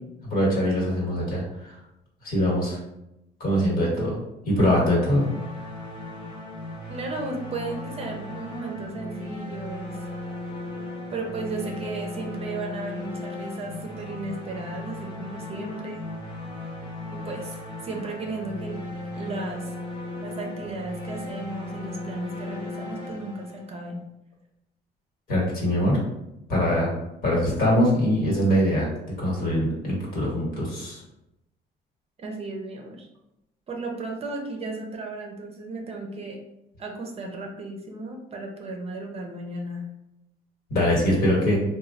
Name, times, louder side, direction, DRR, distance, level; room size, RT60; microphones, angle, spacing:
voice 1, 0.3-1.4 2.2-2.8 3.4-4.2 4.5-5.3 25.3-26.0 26.5-26.9 27.2-28.9 29.2-31.0 40.7-41.6, equal, 65° left, -3 dB, 1.3 m, -22 dB
sound 1, 5.0-24.0, left 1 dB, 35° left, 0.9 m, -36 dB
voice 2, 6.9-10.1 11.1-16.1 17.1-19.7 20.2-24.1 32.2-33.1 33.7-36.4 36.8-39.9, right 2 dB, 35° right, 2 dB, 0.6 m, -35 dB
3.0 x 2.2 x 2.6 m, 0.87 s
cardioid pair, 110°, 17 cm